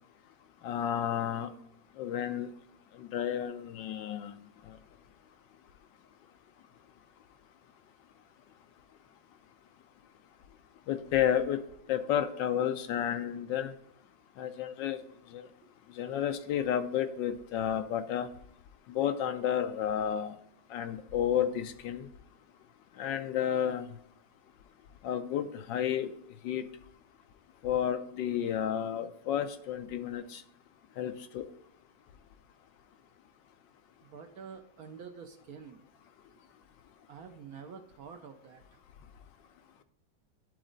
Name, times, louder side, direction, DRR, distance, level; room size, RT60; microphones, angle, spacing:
voice 1, 0.6-1.5 2.0-2.5 2.9-4.8 10.9-11.6 11.9-13.7 14.4-15.0 15.3-15.5 15.9-18.3 18.9-20.3 20.7-22.1 23.0-24.0 25.0-26.1 26.4-26.6 27.6-30.4 31.0-31.5, left 9 dB, 80° left, 9 dB, 1.3 m, -31 dB
voice 2, 34.0-35.8 36.3-36.4 37.1-38.8, right 6 dB, 65° right, 5 dB, 1.0 m, -48 dB
11.0 x 4.0 x 3.9 m, 0.75 s
omnidirectional pair, 2.0 m